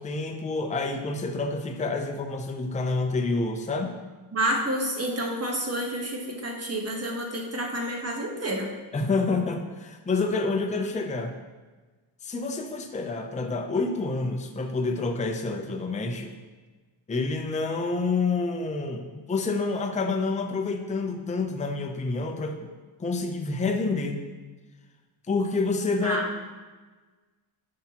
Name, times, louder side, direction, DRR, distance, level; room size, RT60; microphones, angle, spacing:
voice 1, 0.0-3.9 8.9-11.3 12.2-16.3 17.1-22.6 23.0-24.2 25.3-26.4, left 3 dB, 15° left, 4 dB, 0.5 m, -28 dB
voice 2, 4.3-8.7 26.0-26.3, right 1 dB, 30° right, 0 dB, 1.2 m, -29 dB
9.9 x 5.7 x 2.9 m, 1.3 s
wide cardioid pair, 130°, 49 cm